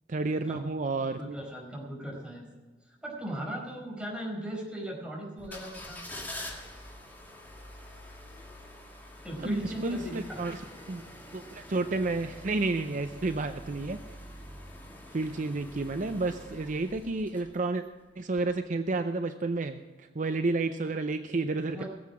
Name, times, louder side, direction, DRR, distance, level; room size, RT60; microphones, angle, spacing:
voice 1, 0.1-1.2 9.4-10.6 10.9-11.0 11.3-14.0 15.1-17.8 18.2-21.8, right 3 dB, 45° right, 8 dB, 0.6 m, -31 dB
voice 2, 1.0-2.5 2.8-6.0 9.2-10.4 21.7-21.9, right 1 dB, 5° right, -3 dB, 4.8 m, -38 dB
sound 1, 5.4-17.9 18.3-18.4, left 1 dB, 10° left, 2.1 m, -46 dB
19.5 x 7.7 x 6.1 m, 1.3 s
head